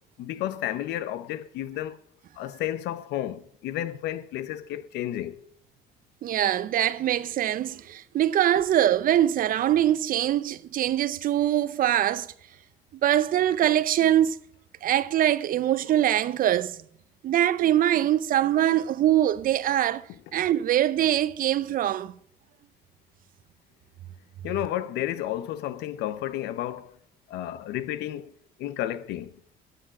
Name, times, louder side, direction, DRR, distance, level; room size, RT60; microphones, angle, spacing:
voice 1, 0.2-2.0 2.4-5.4 24.4-27.0 27.3-28.3 28.6-29.3, left 13 dB, 85° left, 0.8 m, -32 dB
voice 2, 6.2-12.3 13.0-14.4 14.8-16.8 17.2-20.1 20.3-22.1, right 12 dB, 55° right, 0.6 m, -23 dB
13.5 x 7.8 x 6.1 m
cardioid pair, 110°, 17 cm